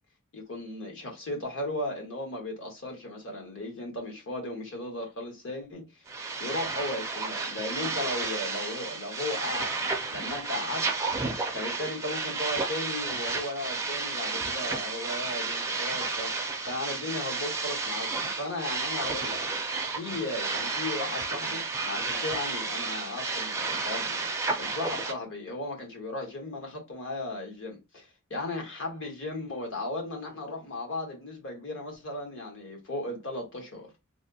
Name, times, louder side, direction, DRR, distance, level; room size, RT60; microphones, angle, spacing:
voice 1, 0.3-6.0 6.4-9.7 10.1-10.8 11.5-16.3 16.6-19.4 19.9-24.3 24.6-33.9, left 2 dB, 60° left, 1.2 m, -36 dB
sound 1, 6.1-25.1, right 4 dB, 15° right, 0.4 m, -32 dB
3.4 x 2.4 x 2.7 m
head